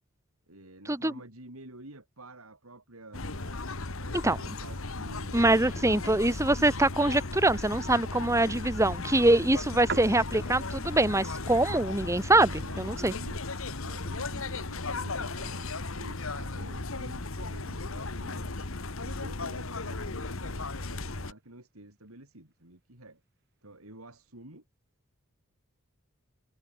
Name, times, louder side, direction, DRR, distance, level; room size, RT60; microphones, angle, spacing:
voice 1, 0.5-3.7 3.9-5.5 12.3-13.4 13.8-18.6 19.0-23.2 23.6-24.6, right 2 dB, 90° right, 5.2 m, -50 dB
sound 1, 3.1-21.3, left 3 dB, 70° left, 1.8 m, -36 dB
voice 2, 5.3-12.5 12.8-13.1, right 2 dB, 15° right, 1.5 m, -24 dB
sound 2, 6.3-24.5, right 4 dB, 55° right, 5.3 m, -50 dB
head